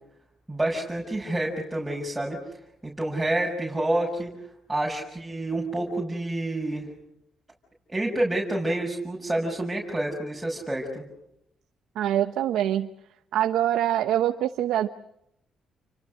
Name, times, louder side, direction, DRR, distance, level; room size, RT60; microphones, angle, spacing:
voice 1, 0.5-2.4 2.8-4.3 4.7-6.9 7.9-11.0, right 1 dB, 10° right, -3 dB, 6.2 m, -28 dB
voice 2, 12.0-12.9 13.3-14.9, right 11 dB, 85° right, 8 dB, 1.0 m, -24 dB
29.5 x 25.0 x 6.5 m, 0.80 s
cardioid pair, 90°, 0 cm